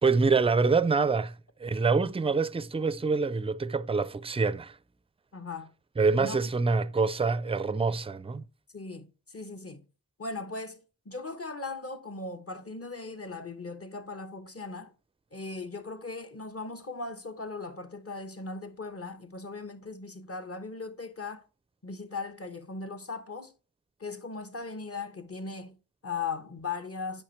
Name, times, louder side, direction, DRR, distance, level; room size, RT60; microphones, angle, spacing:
voice 1, 0.0-1.3 1.6-4.8 6.0-8.5, right 4 dB, 15° right, 0.4 m, -26 dB
voice 2, 5.3-5.7 6.2-6.4 8.7-9.8 10.2-14.9 15.3-21.4 21.8-23.5 24.0-27.2, left 4 dB, 40° left, 1.0 m, -38 dB
8.6 x 5.4 x 3.2 m
wide cardioid pair, 50°, 36 cm